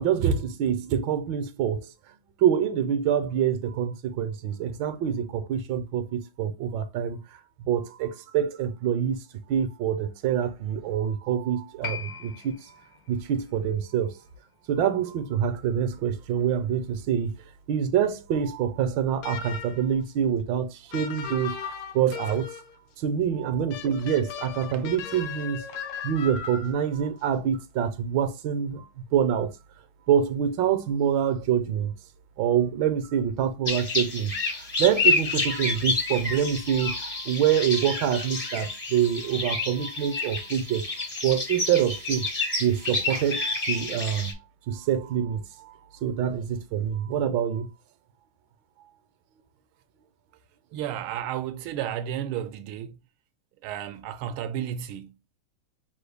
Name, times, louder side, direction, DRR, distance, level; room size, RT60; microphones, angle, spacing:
voice 1, 0.0-1.9 2.4-9.2 9.5-12.7 13.1-14.2 14.7-17.3 17.7-22.5 23.0-25.6 26.0-29.5 30.1-31.9 32.4-40.8 41.2-42.3 42.6-44.3 44.7-45.7 46.0-47.7, right 9 dB, 70° right, 1.4 m, -26 dB
Piano, 11.8-18.8 19.0-19.1, left 7 dB, 70° left, 0.9 m, -44 dB
sound 1, 19.2-19.9 20.9-22.8 23.7-26.9, left 7 dB, 85° left, 1.5 m, -37 dB
sound 2, 33.7-44.3, left 3 dB, 35° left, 0.5 m, -29 dB
voice 2, 50.7-53.0 53.6-55.2, right 10 dB, 90° right, 1.4 m, -33 dB
6.2 x 2.3 x 3.4 m
omnidirectional pair, 2.3 m